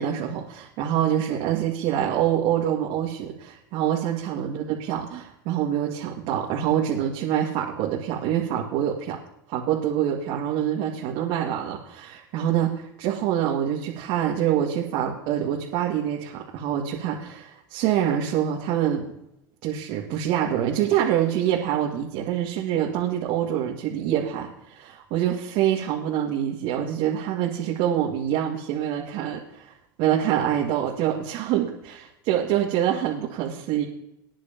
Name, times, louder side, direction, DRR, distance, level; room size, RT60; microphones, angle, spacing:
voice 1, 0.0-9.2 9.5-19.1 19.6-29.7 30.0-33.8, right 10 dB, 60° right, -2 dB, 2.1 m, -25 dB
20.5 x 10.0 x 3.0 m, 0.83 s
hypercardioid pair, 100°, 11 cm